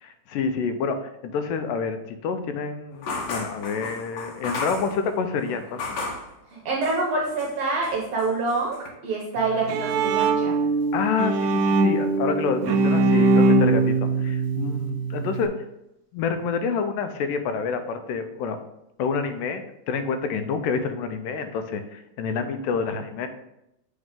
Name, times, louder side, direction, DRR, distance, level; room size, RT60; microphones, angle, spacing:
voice 1, 0.0-6.0 10.9-15.5 16.1-18.6 19.0-23.3, left 5 dB, 85° left, 8 dB, 2.2 m, -28 dB
sound 1, 3.0-6.3 6.8-7.6 7.8-8.9, left 3 dB, 65° left, 1.7 m, -34 dB
voice 2, 6.5-10.6, right 3 dB, 70° right, -2 dB, 1.5 m, -26 dB
Bowed string instrument, 9.4-15.5, right 3 dB, 85° right, 1.6 m, -22 dB
7.2 x 3.8 x 3.6 m, 0.84 s
omnidirectional pair, 3.8 m